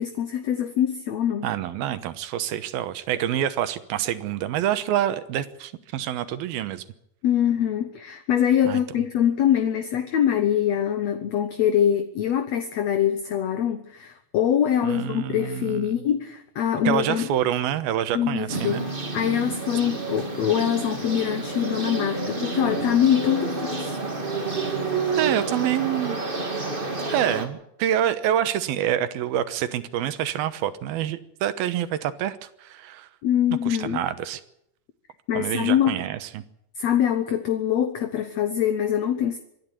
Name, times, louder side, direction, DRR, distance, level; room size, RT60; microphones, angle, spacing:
voice 1, 0.0-1.5 7.2-17.3 18.1-18.8 19.1-24.0 33.2-34.0 35.3-36.0 36.8-39.4, left 9 dB, 65° left, 8 dB, 1.8 m, -24 dB
voice 2, 1.4-6.8 8.6-8.8 14.8-16.0 16.8-18.9 25.1-26.2 27.0-33.1 33.7-34.4 35.3-36.4, right 11 dB, 80° right, 12 dB, 2.9 m, -27 dB
sound 1, 18.5-27.5, right 3 dB, 15° right, 1.9 m, -29 dB
25.5 x 11.0 x 9.7 m, 0.77 s
omnidirectional pair, 4.4 m